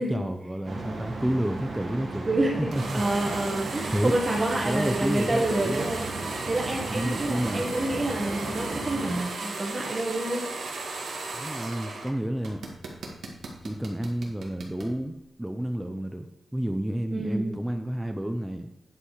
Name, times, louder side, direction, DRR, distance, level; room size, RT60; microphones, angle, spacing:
voice 1, 0.0-2.3 2.6-3.0 3.6-4.1 4.6-5.9 6.9-7.7 11.3-12.6 13.6-16.3 16.5-18.7, right 1 dB, 5° right, 6 dB, 0.6 m, -30 dB
sound 1, 0.6-9.2, right 2 dB, 50° right, 1.8 m, -36 dB
voice 2, 2.3-6.1 6.4-10.5 17.1-17.5, right 1 dB, 25° right, 0 dB, 1.5 m, -28 dB
sound 2, 2.7-12.1 12.4-14.9, right 3 dB, 75° right, 1.8 m, -36 dB
9.7 x 5.4 x 4.9 m, 0.90 s
wide cardioid pair, 115°, 0 cm